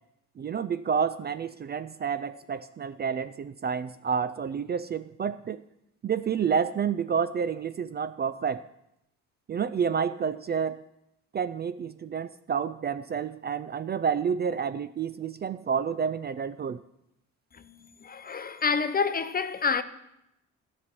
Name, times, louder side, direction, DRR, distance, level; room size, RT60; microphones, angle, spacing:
voice 1, 0.4-5.6 6.0-8.7 9.5-10.8 11.3-16.8, right 7 dB, 35° right, 0.4 m, -29 dB
voice 2, 17.5-19.8, left 5 dB, 30° left, 0.7 m, -28 dB
12.0 x 5.4 x 8.2 m
cardioid pair, 90°, 30 cm